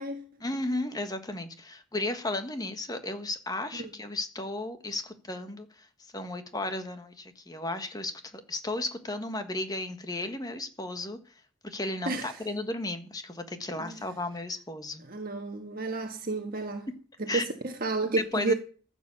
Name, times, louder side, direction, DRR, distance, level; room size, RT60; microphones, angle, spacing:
voice 1, 0.4-5.9 6.1-11.2 11.6-15.0 17.3-17.4 18.3-18.5, left 2 dB, 20° left, 1.5 m, -34 dB
voice 2, 12.0-12.4 13.8-14.0 15.0-16.9 17.2-18.5, right 3 dB, 45° right, 1.5 m, -31 dB
14.5 x 7.4 x 7.1 m
head